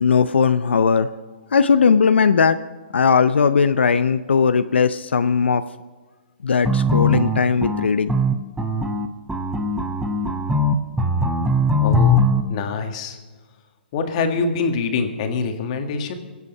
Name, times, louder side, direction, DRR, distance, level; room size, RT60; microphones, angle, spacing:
voice 1, 0.0-1.1 1.5-2.6 2.9-5.6 6.4-8.1, left 6 dB, 90° left, 11 dB, 0.6 m, -18 dB
sound 1, 6.6-12.4, left 1 dB, 5° right, 0.7 m, -20 dB
voice 2, 11.8-12.2 12.5-13.2 13.9-16.1, left 4 dB, 40° left, 5 dB, 1.8 m, -24 dB
23.0 x 8.3 x 5.4 m, 1.4 s
hypercardioid pair, 155°, 6 cm